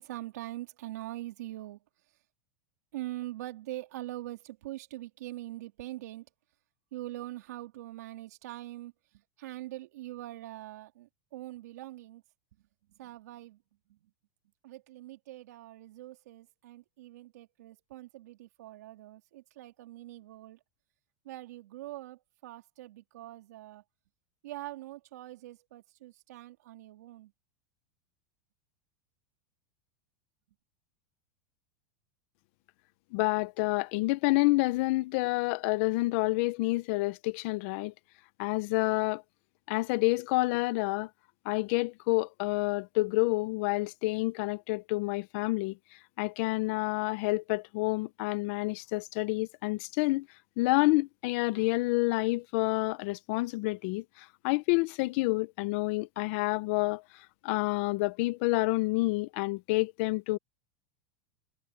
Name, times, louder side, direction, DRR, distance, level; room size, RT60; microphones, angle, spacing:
voice 1, 0.0-1.8 2.9-6.2 6.9-8.9 9.4-12.2 13.0-13.6 13.9-14.0 14.6-20.6 21.2-23.8 24.4-27.3, right 16 dB, 80° right, 3.4 m, -43 dB
voice 2, 33.1-37.9 38.4-39.2 39.7-41.1 41.4-45.8 46.2-50.3 50.6-57.0 57.4-60.4, left 22 dB, 50° left, 0.8 m, -28 dB
supercardioid pair, 160°, 9 cm